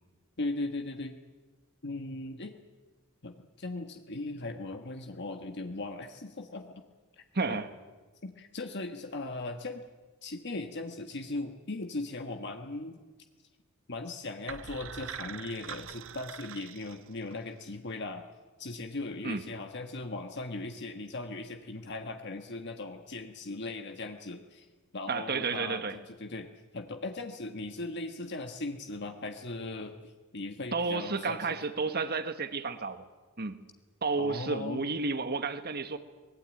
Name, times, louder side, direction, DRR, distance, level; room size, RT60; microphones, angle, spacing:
voice 1, 0.4-1.2 1.8-2.5 3.2-6.8 7.5-7.6 8.2-9.8 10.2-13.0 13.9-18.2 18.6-24.6 24.9-30.0 30.3-31.6 34.2-34.8, left 2 dB, 55° left, 5 dB, 1.4 m, -38 dB
voice 2, 7.3-7.7 19.2-19.4 25.1-26.0 30.7-33.0 33.4-33.6 34.0-36.0, right 4 dB, 50° right, 10 dB, 1.4 m, -31 dB
sound 1, 14.5-17.5, right 8 dB, 65° right, 0.7 m, -43 dB
24.0 x 20.0 x 9.1 m, 1.3 s
head